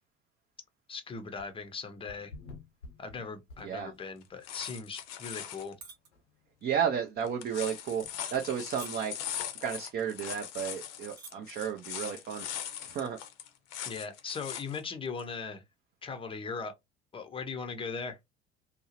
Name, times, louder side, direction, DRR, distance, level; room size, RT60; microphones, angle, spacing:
voice 1, 0.9-2.3 3.0-5.7 13.9-15.6 16.0-16.7 17.1-18.2, left 5 dB, 15° left, 0.6 m, -39 dB
sound 1, 1.3-1.7 2.1-4.2 4.6-4.7 5.2-5.3 5.6-5.7 6.1-6.2 8.0-8.1, left 3 dB, 85° left, 0.7 m, -50 dB
sound 2, 4.2-5.7 7.3-14.8 15.2-15.3, left 10 dB, 50° left, 0.6 m, -40 dB
sound 3, 5.8-6.1 6.5-6.8 7.4-7.6 8.3-8.5 8.8-9.2 10.0-10.1 10.4-10.5 11.0-11.3 11.6-11.9, right 6 dB, 70° right, 0.8 m, -48 dB
voice 2, 6.6-8.0 8.3-9.1 9.6-12.5 12.8-13.2, right 8 dB, 30° right, 0.5 m, -32 dB
2.7 x 2.0 x 2.8 m
figure-of-eight pair, 65°, 33 cm